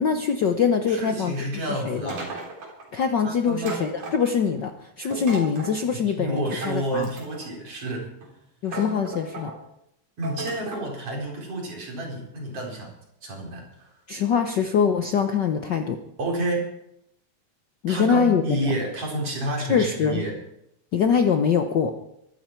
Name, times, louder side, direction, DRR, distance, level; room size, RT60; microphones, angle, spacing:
voice 1, 0.0-1.3 1.7-2.1 2.9-4.7 5.0-7.1 8.6-9.5 14.1-16.0 17.8-18.7 19.7-20.2 20.9-21.9, left 6 dB, 90° left, 6 dB, 0.9 m, -23 dB
voice 2, 0.9-2.3 3.2-3.8 5.0-5.1 5.9-8.1 10.2-12.9 13.2-13.9 16.2-16.7 17.9-20.4, right 1 dB, 50° right, -1 dB, 5.0 m, -30 dB
sound 1, 2.1-2.9 3.6-4.6 5.1-5.8 6.6-7.5 8.2-8.3 8.7-9.6 10.2-10.9, right 3 dB, 75° right, 4.8 m, -36 dB
23.5 x 13.0 x 4.5 m, 0.80 s
omnidirectional pair, 3.4 m